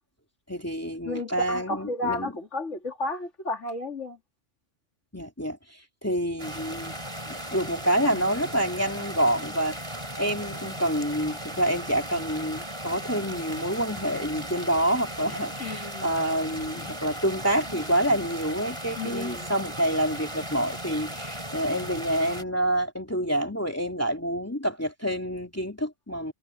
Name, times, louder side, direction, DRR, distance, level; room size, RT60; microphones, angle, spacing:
voice 1, 0.5-2.3 5.1-7.0 7.3-26.3, right 1 dB, 10° left, 2.7 m, -27 dB
voice 2, 1.0-4.2 15.6-16.1 19.0-19.5, left 2 dB, 70° left, 3.1 m, -32 dB
sound 1, 6.4-22.4, right 1 dB, 20° right, 6.4 m, -37 dB
omnidirectional pair, 1.3 m